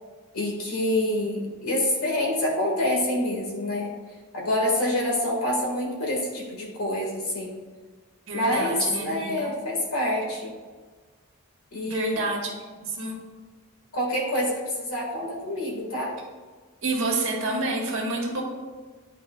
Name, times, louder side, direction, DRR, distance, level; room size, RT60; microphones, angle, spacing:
voice 1, 0.3-3.9 4.3-7.6 8.3-10.5 11.7-12.3 13.9-16.2, left 1 dB, 80° left, -1 dB, 1.7 m, -26 dB
voice 2, 8.3-9.5 11.9-12.5 12.8-13.2 16.8-18.4, right 2 dB, 60° right, -1 dB, 1.5 m, -28 dB
10.5 x 4.7 x 2.3 m, 1.4 s
head